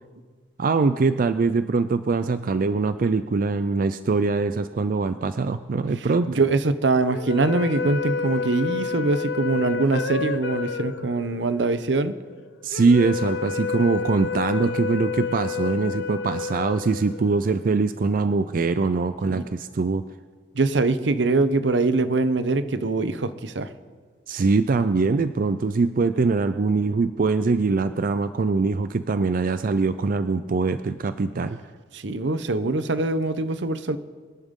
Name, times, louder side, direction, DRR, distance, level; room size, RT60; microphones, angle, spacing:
voice 1, 0.6-6.3 12.6-20.0 24.3-31.6, right 4 dB, 50° right, 11 dB, 0.4 m, -23 dB
voice 2, 6.3-12.1 19.2-19.4 20.5-23.7 31.9-34.0, right 3 dB, 75° right, 12 dB, 0.8 m, -23 dB
sound 1, 7.1-17.5, left 5 dB, 70° left, 0.7 m, -30 dB
25.0 x 11.0 x 3.7 m, 1.5 s
head